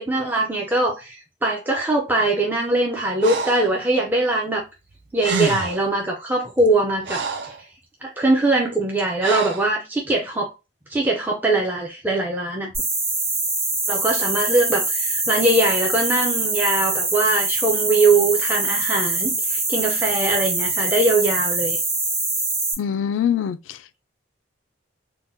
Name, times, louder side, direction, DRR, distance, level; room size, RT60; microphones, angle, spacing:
voice 1, 0.0-4.6 5.1-7.5 8.0-10.5 10.9-12.7 13.9-21.8, right 2 dB, 10° right, 0.4 m, -22 dB
Breathing, 3.2-3.7 4.9-5.0 5.2-5.9 6.6-7.6 9.2-9.7, right 4 dB, 65° right, 0.5 m, -27 dB
sound 1, 12.7-22.7, right 3 dB, 30° right, 1.2 m, -24 dB
voice 2, 22.8-24.0, left 8 dB, 85° left, 0.3 m, -24 dB
3.7 x 2.1 x 2.6 m
head